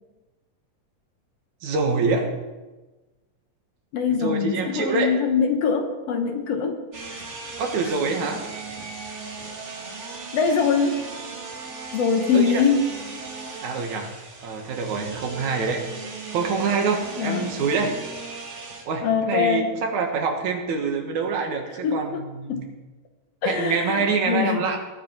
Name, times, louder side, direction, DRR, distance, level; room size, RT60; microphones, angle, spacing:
voice 1, 1.6-2.3 4.1-5.1 7.6-8.4 12.3-12.6 13.6-14.1 14.4-15.8 16.3-18.2 18.9-22.6 23.4-24.8, right 4 dB, 75° right, 3 dB, 2.8 m, -25 dB
voice 2, 3.9-6.8 7.1-7.3 10.3-11.1 11.9-13.0 17.2-17.6 19.0-19.8 21.8-22.2 22.5-22.7 23.4-24.7, left 6 dB, 65° left, 5 dB, 1.8 m, -23 dB
sound 1, 6.9-18.8, right 4 dB, 35° right, 1.2 m, -37 dB
19.5 x 8.3 x 4.5 m, 1.2 s
omnidirectional pair, 3.5 m